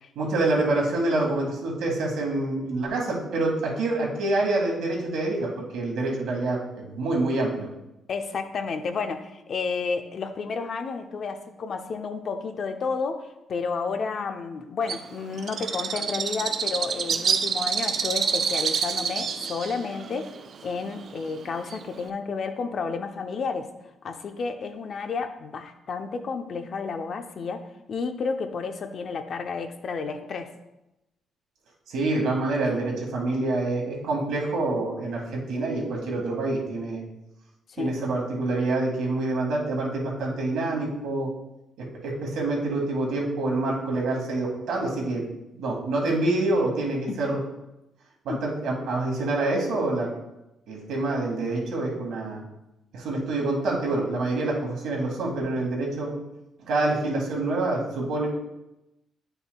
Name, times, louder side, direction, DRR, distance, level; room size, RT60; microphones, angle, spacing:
voice 1, 0.2-7.7 31.9-37.0 37.8-41.3 42.0-45.2 45.5-47.4 48.3-50.1 50.7-52.4 52.9-56.1 56.6-58.3, right 2 dB, 80° right, -2 dB, 1.8 m, -26 dB
voice 2, 8.1-23.7 24.0-30.5 37.8-38.0 47.1-47.2 48.3-48.4, left 5 dB, 55° left, 7 dB, 0.6 m, -31 dB
Bird, 14.9-22.1, right 6 dB, 55° right, 0.4 m, -28 dB
9.0 x 5.6 x 2.3 m, 0.93 s
cardioid pair, 90°, 0 cm